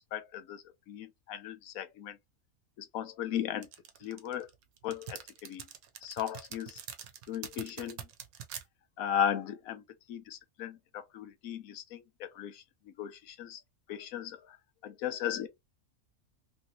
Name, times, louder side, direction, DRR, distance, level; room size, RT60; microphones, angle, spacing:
voice 1, 0.1-2.2 2.8-3.7 4.0-4.5 4.8-5.7 6.0-6.8 7.3-8.0 9.0-9.8 10.1-12.6 13.0-13.6 13.9-14.6 14.8-15.5, left 9 dB, 75° left, 1.1 m, -36 dB
sound 1, 3.6-8.6, right 9 dB, 75° right, 1.1 m, -44 dB
3.1 x 2.7 x 2.8 m
omnidirectional pair, 1.6 m